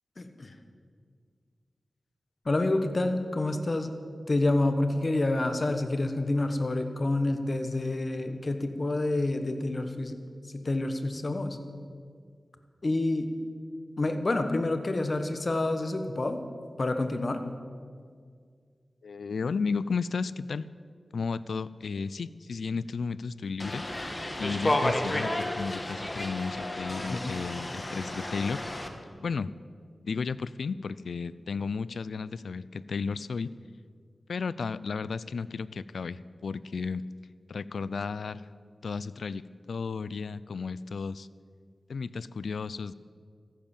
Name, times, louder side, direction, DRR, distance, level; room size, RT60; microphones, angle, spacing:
voice 1, 0.2-0.5 2.4-3.9 4.3-10.2 10.5-11.6 12.8-13.3 14.0-16.4 16.8-17.4 27.0-27.4, left 2 dB, 50° left, 8 dB, 1.3 m, -28 dB
voice 2, 19.0-20.7 21.1-23.8 24.4-28.6 29.2-29.5 30.0-33.5 34.3-37.0 37.5-38.5 38.8-41.3 41.9-42.9, left 5 dB, 90° left, 18 dB, 0.4 m, -33 dB
sound 1, 23.6-28.9, left 1 dB, 30° left, 1.5 m, -32 dB
14.0 x 10.0 x 7.2 m, 2.1 s
cardioid pair, 50°, 0 cm